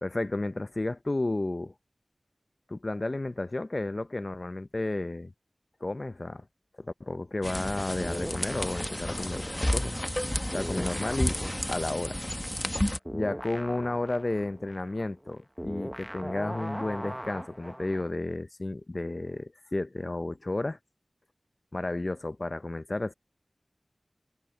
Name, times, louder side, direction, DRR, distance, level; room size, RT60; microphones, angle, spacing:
voice 1, 0.0-1.7 2.7-5.3 5.8-6.4 6.8-9.4 9.7-10.2 10.5-11.4 11.7-12.2 13.1-20.8 21.7-23.1, left 2 dB, 45° left, 0.5 m, -32 dB
sound 1, 7.4-13.0, left 1 dB, 15° left, 1.1 m, -31 dB
sound 2, 8.0-10.2 10.5-18.1, equal, 5° right, 0.8 m, -40 dB
wide cardioid pair, 65°, 0 cm